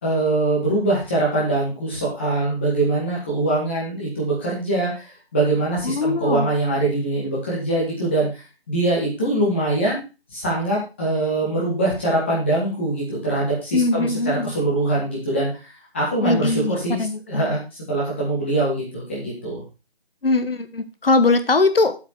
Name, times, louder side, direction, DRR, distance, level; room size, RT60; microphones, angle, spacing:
voice 1, 0.0-8.4 8.7-10.0 10.3-15.5 15.9-17.0 17.3-17.6 17.9-19.6, right 2 dB, 10° left, -6 dB, 2.3 m, -23 dB
voice 2, 5.8-6.5 13.7-14.5 16.2-17.6 20.2-22.0, left 3 dB, 65° left, 10 dB, 1.5 m, -21 dB
8.3 x 7.3 x 4.9 m, 0.30 s
figure-of-eight pair, 175°, 31 cm